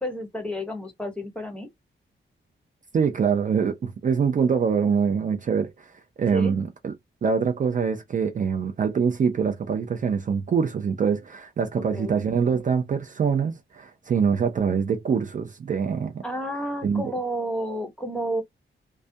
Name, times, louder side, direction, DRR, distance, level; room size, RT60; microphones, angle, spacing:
voice 1, 0.0-1.7 6.3-6.5 11.9-12.1 16.2-18.4, right 1 dB, 5° left, 0.6 m, -30 dB
voice 2, 2.9-5.9 6.2-6.9 7.2-16.2 16.8-17.1, right 6 dB, 40° right, 0.4 m, -24 dB
2.3 x 2.1 x 2.6 m
wide cardioid pair, 180°, 20 cm